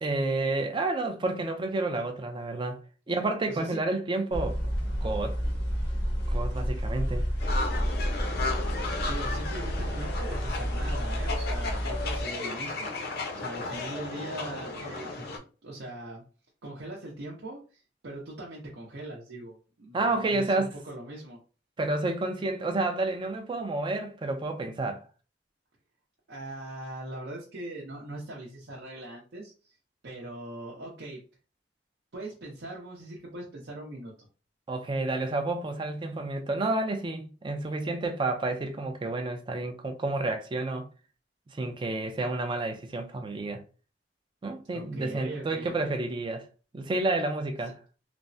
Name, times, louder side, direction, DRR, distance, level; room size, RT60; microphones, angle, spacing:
voice 1, 0.0-2.8 3.1-4.6 5.0-5.4 6.3-7.3 19.9-20.7 21.8-25.0 34.7-40.9 41.5-43.6 44.4-46.5 46.7-47.8, right 2 dB, 25° right, 0.4 m, -30 dB
voice 2, 3.5-3.8 9.1-15.3 15.6-16.2 16.6-21.4 26.3-29.8 30.0-31.2 32.1-34.1 44.7-45.7, right 1 dB, 70° right, 0.7 m, -41 dB
sound 1, 4.3-12.2, equal, 90° left, 0.8 m, -30 dB
sound 2, 7.4-15.4, left 3 dB, 60° left, 0.5 m, -35 dB
3.3 x 2.0 x 2.6 m
head